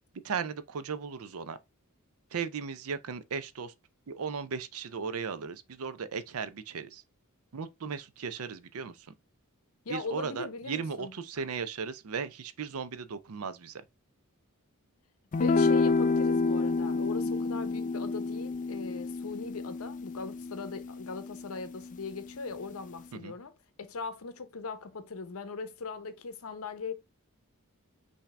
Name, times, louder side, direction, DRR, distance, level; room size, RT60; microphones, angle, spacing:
voice 1, 0.2-1.6 2.3-3.7 4.1-7.0 7.5-9.0 9.9-13.8 23.1-23.3, right 6 dB, 70° right, 0.5 m, -36 dB
voice 2, 9.8-11.1 15.4-23.5 23.8-26.9, left 4 dB, 70° left, 0.7 m, -39 dB
sound 1, 15.3-21.9, left 3 dB, 35° left, 0.4 m, -29 dB
5.7 x 2.7 x 3.3 m
head